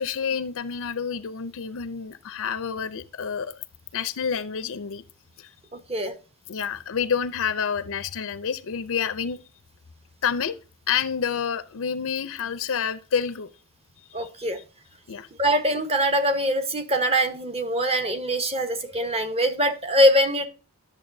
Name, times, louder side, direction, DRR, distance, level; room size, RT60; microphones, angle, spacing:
voice 1, 0.0-3.5 3.9-5.0 5.4-5.5 6.5-9.4 10.2-10.6 10.9-13.5 14.2-14.3 15.1-15.3, left 7 dB, 65° left, 0.6 m, -28 dB
voice 2, 14.1-14.6 15.4-20.5, equal, 25° right, 1.2 m, -23 dB
10.5 x 7.1 x 2.7 m
head